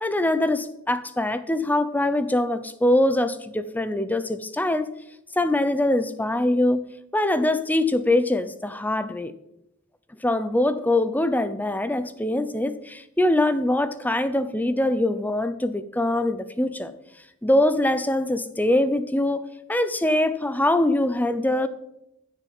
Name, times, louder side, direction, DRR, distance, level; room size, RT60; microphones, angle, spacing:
voice 1, 0.0-4.9 5.4-6.8 7.1-9.3 10.2-16.9 17.4-19.4 19.7-21.7, left 1 dB, 10° left, 12 dB, 0.6 m, -23 dB
14.0 x 6.5 x 7.8 m, 0.86 s
head